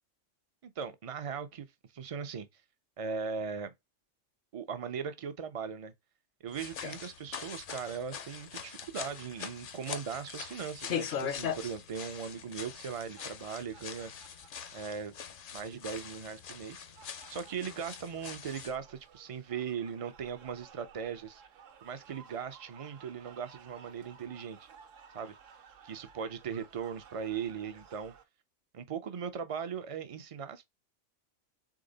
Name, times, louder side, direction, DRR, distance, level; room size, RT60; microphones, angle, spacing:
voice 1, 0.6-1.7 1.9-2.5 3.0-3.7 4.5-5.9 6.4-14.1 14.7-15.1 15.5-16.8 17.3-21.4 21.8-24.7 25.1-25.3 25.8-28.1 28.7-30.6, right 6 dB, 60° right, 0.3 m, -39 dB
sound 1, 6.5-18.8, left 8 dB, 55° left, 0.6 m, -41 dB
sound 2, 12.9-28.2, right 7 dB, 80° right, 1.1 m, -57 dB
3.7 x 3.5 x 3.9 m
omnidirectional pair, 1.3 m